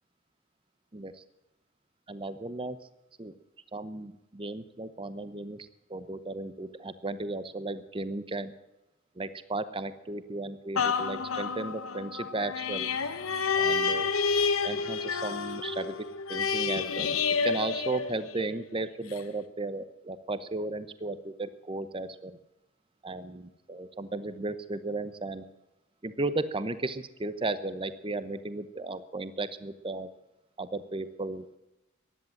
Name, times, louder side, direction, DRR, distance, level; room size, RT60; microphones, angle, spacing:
voice 1, 0.9-1.2 2.1-2.8 3.2-3.3 3.7-8.5 9.2-12.9 13.5-14.1 14.6-15.9 16.3-17.2 17.4-22.4 23.0-25.5 26.0-30.1 30.6-31.5, right 2 dB, 25° right, 13 dB, 0.8 m, -35 dB
sound 1, 10.8-18.6 19.1-19.2, left 5 dB, 80° left, 1.2 m, -29 dB
15.5 x 10.5 x 7.2 m, 0.95 s
head